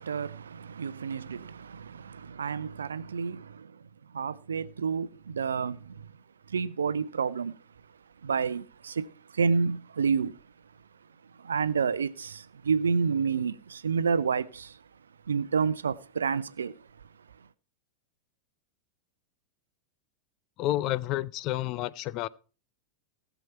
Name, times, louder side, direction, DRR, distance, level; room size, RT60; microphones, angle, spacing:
voice 1, 0.0-6.1 6.5-7.6 8.2-10.4 11.4-14.8 15.3-16.9 17.4-17.5, right 5 dB, 70° right, 0.6 m, -30 dB
voice 2, 20.6-22.3, left 15 dB, 40° left, 0.4 m, -30 dB
17.0 x 7.0 x 4.3 m
figure-of-eight pair, 90°, 0 cm